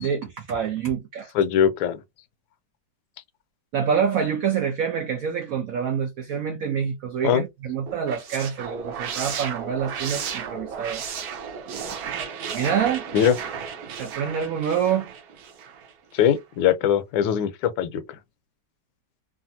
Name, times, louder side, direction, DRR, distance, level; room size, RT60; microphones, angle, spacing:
voice 1, 0.0-1.3 3.7-11.0 12.5-13.0 14.0-15.1, right 7 dB, 85° right, 0.7 m, -26 dB
voice 2, 1.3-2.0 7.2-7.4 13.1-13.3 16.1-18.0, left 9 dB, 80° left, 1.3 m, -21 dB
sound 1, 7.9-15.9, right 7 dB, 65° right, 1.0 m, -34 dB
3.2 x 2.4 x 2.7 m
omnidirectional pair, 2.2 m